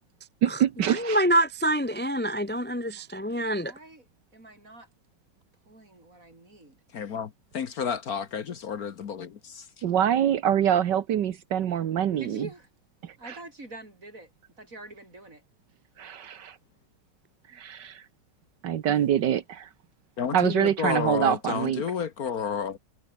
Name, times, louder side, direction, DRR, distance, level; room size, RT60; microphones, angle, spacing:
voice 1, 0.4-1.2 9.8-12.5 13.0-13.4 16.0-16.6 17.5-18.0 18.6-19.7 20.3-21.8, right 10 dB, 75° right, 1.7 m, -25 dB
voice 2, 0.9-3.7, right 1 dB, 5° left, 1.0 m, -26 dB
voice 3, 3.6-4.1 4.3-4.9 5.7-6.8 7.8-8.0 12.2-12.7 13.2-14.3 14.6-15.4 17.5-17.6, right 2 dB, 45° right, 6.7 m, -45 dB
voice 4, 6.9-9.8 20.2-22.8, left 7 dB, 60° left, 1.5 m, -31 dB
omnidirectional pair, 1.9 m